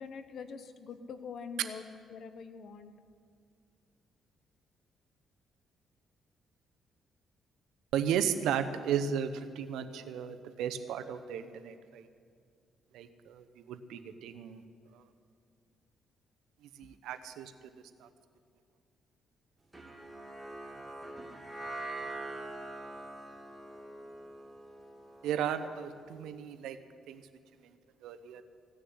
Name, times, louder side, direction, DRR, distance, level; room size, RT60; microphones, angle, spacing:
voice 1, 0.0-1.8 2.1-2.9, left 5 dB, 65° left, 10 dB, 1.0 m, -44 dB
voice 2, 7.9-12.1 12.9-14.6 14.9-15.0 16.8-17.7 18.0-18.1 25.2-26.8 27.1-27.2 27.6-27.7 28.0-28.4, right 8 dB, 90° right, 9 dB, 0.8 m, -35 dB
sound 1, 19.7-26.1, right 2 dB, 15° right, 1.9 m, -44 dB
16.5 x 6.7 x 9.5 m, 2.1 s
cardioid pair, 90°, 0 cm